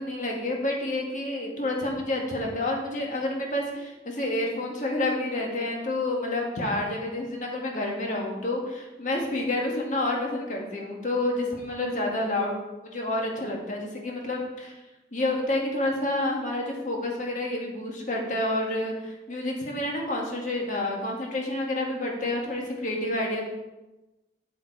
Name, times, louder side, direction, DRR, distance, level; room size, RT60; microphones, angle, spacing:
voice 1, 0.0-12.6 12.8-14.7 15.1-23.4, left 1 dB, 45° left, -1 dB, 2.0 m, -29 dB
8.7 x 7.3 x 4.7 m, 1.0 s
head